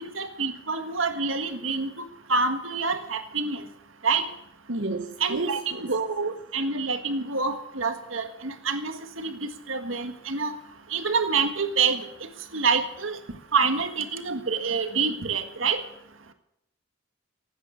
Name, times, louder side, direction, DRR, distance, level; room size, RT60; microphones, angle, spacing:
voice 1, 0.0-1.9 2.3-3.6 4.0-4.2 5.2-10.6 10.9-12.1 12.5-13.2 13.5-15.8, right 4 dB, 85° right, 1.7 m, -27 dB
voice 2, 4.7-5.9, right 2 dB, 70° right, 1.1 m, -31 dB
17.0 x 9.2 x 8.6 m
head